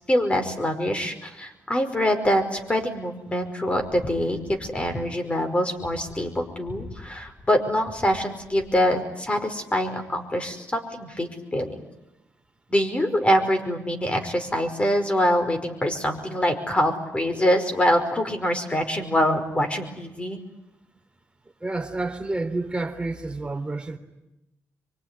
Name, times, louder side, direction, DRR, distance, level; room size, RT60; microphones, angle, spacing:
voice 1, 0.1-11.8 12.7-20.4, equal, 20° left, 6 dB, 5.3 m, -24 dB
voice 2, 21.6-24.0, right 2 dB, 15° right, 6 dB, 3.4 m, -29 dB
24.5 x 24.5 x 10.0 m, 0.93 s
cardioid pair, 95°, 6 cm